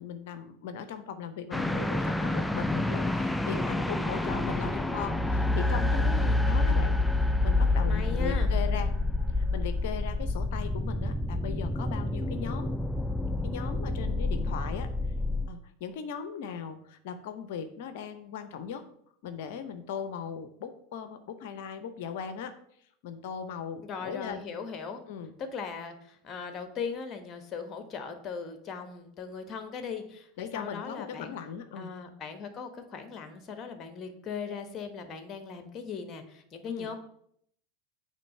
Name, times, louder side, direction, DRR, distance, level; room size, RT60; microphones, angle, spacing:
voice 1, 0.0-6.0 6.3-9.0 9.3-12.7 13.4-14.9 15.5-18.8 19.2-22.5 23.0-24.4 25.1-25.3 30.4-31.9 36.7-37.0, left 7 dB, 60° left, 10 dB, 0.7 m, -38 dB
sound 1, 1.5-15.5, left 2 dB, 5° left, 0.4 m, -28 dB
voice 2, 5.9-6.4 7.9-8.5 23.8-25.0 25.4-31.4 31.8-37.0, left 5 dB, 35° left, 8 dB, 1.2 m, -39 dB
8.3 x 3.3 x 5.6 m, 0.69 s
figure-of-eight pair, 85°, 0 cm